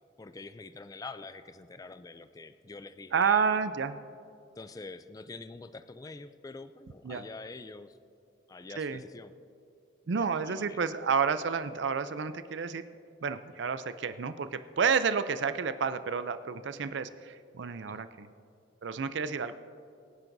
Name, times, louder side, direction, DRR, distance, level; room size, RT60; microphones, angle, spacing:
voice 1, 0.2-3.6 4.6-7.9 8.5-9.3 10.2-10.8 17.9-18.0, left 3 dB, 20° left, 11 dB, 0.3 m, -45 dB
voice 2, 3.1-4.0 7.0-7.3 8.8-9.0 10.1-12.9 13.2-18.3 18.8-19.5, right 6 dB, 65° right, 11 dB, 0.5 m, -30 dB
24.0 x 10.5 x 2.7 m, 2.4 s
head